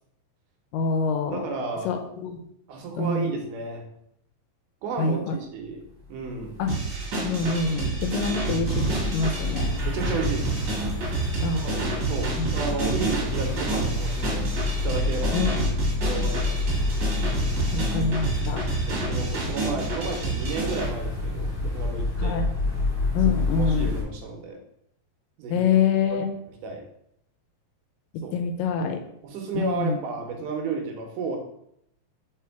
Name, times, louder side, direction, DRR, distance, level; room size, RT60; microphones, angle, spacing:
voice 1, 0.7-1.4 1.9-2.4 3.0-3.3 5.0-5.4 6.6-6.7 7.1-8.9 9.1-9.7 11.4-11.6 12.4-12.5 15.3-15.6 17.7-18.7 22.2-22.5 23.1-23.9 25.5-26.3 28.3-29.0 29.5-30.0, left 5 dB, 80° left, 5 dB, 2.2 m, -25 dB
voice 2, 1.3-2.0 2.7-3.8 4.8-5.8 6.1-6.5 9.9-10.6 11.5-14.5 14.8-15.4 16.0-16.6 17.7-17.8 18.3-18.6 18.9-22.4 23.3-24.6 25.4-25.7 26.1-26.2 26.6-26.8 28.2-28.3 29.2-31.4, right 4 dB, 75° right, 2 dB, 2.3 m, -32 dB
sound 1, 6.0-24.0, left 3 dB, 25° left, 1.9 m, -29 dB
sound 2, 6.7-20.9, right 4 dB, 45° right, 2.0 m, -29 dB
4.8 x 4.5 x 4.5 m, 0.74 s
omnidirectional pair, 4.1 m